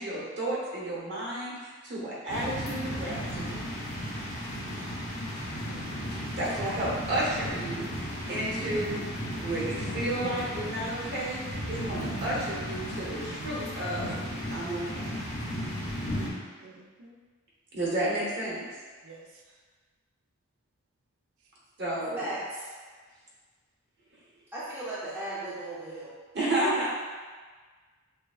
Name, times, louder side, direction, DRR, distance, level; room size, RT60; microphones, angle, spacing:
voice 1, 0.0-3.7 6.4-14.1 14.5-15.2 17.7-18.6 21.8-22.3 26.3-26.9, right 1 dB, 50° right, -6 dB, 1.0 m, -32 dB
sound 1, 2.3-16.3, equal, 50° left, 1.2 m, -35 dB
voice 2, 4.6-5.0 5.7-6.3 16.6-17.1 19.0-19.3, right 3 dB, 75° right, -1 dB, 0.5 m, -52 dB
voice 3, 22.2-22.7 24.5-26.1, right 1 dB, 10° right, -13 dB, 0.8 m, -36 dB
6.5 x 2.2 x 2.4 m, 1.5 s
head